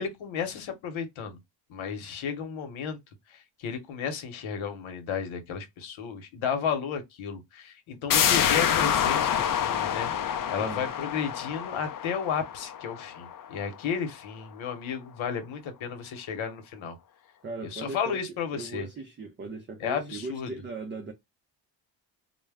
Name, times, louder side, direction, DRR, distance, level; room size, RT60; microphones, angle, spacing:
voice 1, 0.0-1.4 1.7-3.0 3.3-17.0 17.6-18.9 19.8-20.5, left 7 dB, 80° left, 0.9 m, -33 dB
sound 1, 8.1-13.6 13.9-14.0, left 9 dB, 45° left, 0.4 m, -27 dB
voice 2, 17.4-18.2 18.5-21.1, right 3 dB, 25° right, 0.4 m, -38 dB
2.2 x 2.1 x 3.3 m
cardioid pair, 110°, 47 cm